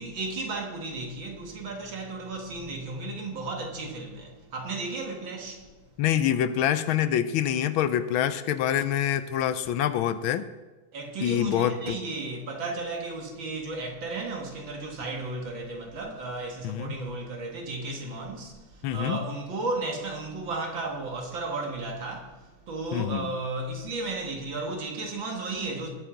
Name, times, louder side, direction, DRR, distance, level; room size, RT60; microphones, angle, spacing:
voice 1, 0.0-5.7 10.9-25.9, right 3 dB, 65° right, 2.5 m, -34 dB
voice 2, 6.0-10.5 11.2-12.0 16.6-17.0 18.8-19.3 22.9-23.3, left 10 dB, 80° left, 1.4 m, -26 dB
20.0 x 8.1 x 3.9 m
omnidirectional pair, 2.3 m